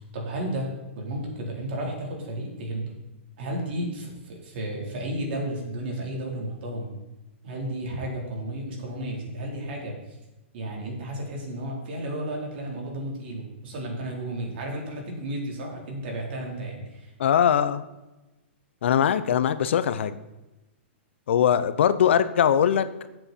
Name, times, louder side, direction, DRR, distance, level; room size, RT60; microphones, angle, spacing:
voice 1, 0.1-0.7 0.9-2.9 3.4-6.9 7.4-10.2 10.5-17.1, right 1 dB, 55° right, 0 dB, 4.2 m, -33 dB
voice 2, 17.2-17.8 18.8-20.2 21.3-23.1, left 9 dB, 70° left, 14 dB, 0.8 m, -21 dB
14.0 x 7.8 x 4.5 m, 1.0 s
hypercardioid pair, 145°, 7 cm